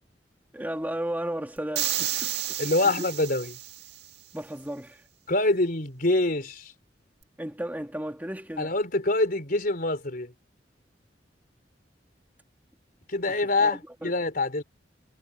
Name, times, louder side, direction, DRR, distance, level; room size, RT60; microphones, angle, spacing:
voice 1, 0.5-3.1 4.3-5.0 7.4-8.7 13.3-14.1, right 1 dB, 10° right, 2.3 m, -35 dB
sound 1, 1.7-4.0, right 12 dB, 65° right, 2.3 m, -31 dB
voice 2, 2.6-3.5 5.3-6.7 8.6-10.3 13.1-14.6, left 2 dB, 55° left, 4.0 m, -25 dB
head